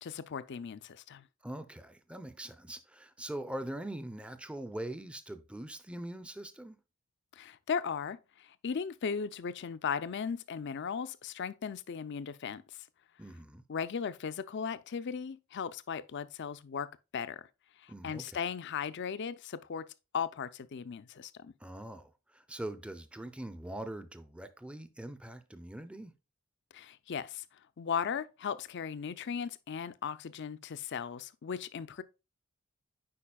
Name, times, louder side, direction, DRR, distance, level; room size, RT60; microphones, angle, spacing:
voice 1, 0.0-1.2 7.3-12.6 13.7-17.5 17.8-19.9 20.1-21.5 26.7-27.4 27.8-32.0, left 6 dB, 55° left, 0.4 m, -37 dB
voice 2, 1.4-6.8 13.2-13.6 17.9-18.4 21.6-26.1, right 1 dB, 5° right, 0.5 m, -42 dB
8.6 x 5.0 x 2.3 m
head